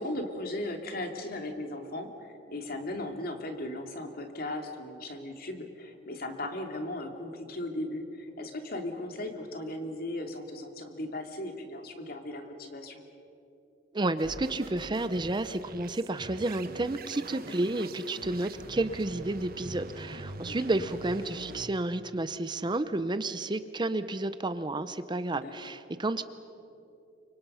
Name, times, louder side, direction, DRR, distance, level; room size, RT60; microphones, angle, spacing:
voice 1, 0.0-13.0 20.5-20.6 25.3-25.7, left 1 dB, 55° left, 4 dB, 2.6 m, -37 dB
voice 2, 13.9-26.2, right 2 dB, 25° right, 12 dB, 0.7 m, -31 dB
sound 1, 14.2-21.7, right 2 dB, 55° right, 1.2 m, -44 dB
29.0 x 25.5 x 5.6 m, 2.7 s
head